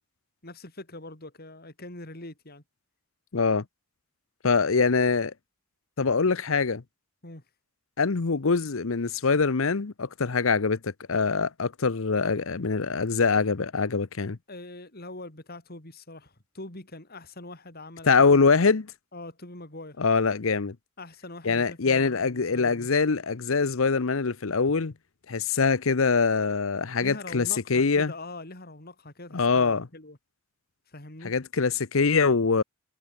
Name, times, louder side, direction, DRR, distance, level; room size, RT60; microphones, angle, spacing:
voice 1, 0.4-2.6 7.2-7.4 14.5-18.5 19.1-20.0 21.0-22.9 27.0-30.2 30.9-31.3, left 2 dB, 45° left, 4.2 m, -43 dB
voice 2, 3.3-3.6 4.4-5.3 6.0-6.8 8.0-14.4 18.1-18.9 20.0-20.8 21.4-24.9 25.3-28.1 29.3-29.9 31.2-32.6, left 4 dB, 75° left, 0.8 m, -24 dB
head